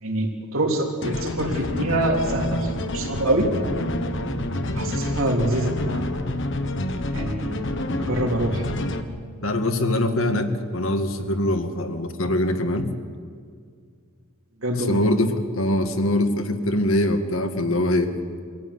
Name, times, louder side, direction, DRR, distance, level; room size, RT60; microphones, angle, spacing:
voice 1, 0.0-3.5 4.7-6.1 7.1-7.6 8.0-8.7 14.6-15.0, right 1 dB, 80° right, 1 dB, 3.4 m, -25 dB
sound 1, 1.0-9.0, left 1 dB, 60° left, 1.4 m, -28 dB
voice 2, 9.4-12.9 14.7-18.1, left 1 dB, 80° left, 7 dB, 1.9 m, -23 dB
25.0 x 16.0 x 9.8 m, 2.1 s
head